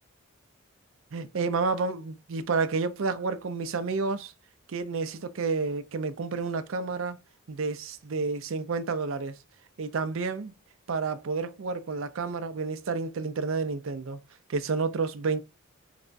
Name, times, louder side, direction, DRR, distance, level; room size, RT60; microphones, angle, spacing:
voice 1, 1.1-4.3 4.7-7.2 7.5-9.4 9.8-10.5 10.9-14.2 14.5-15.4, right 4 dB, 65° right, 0.5 m, -30 dB
4.8 x 2.2 x 2.4 m
head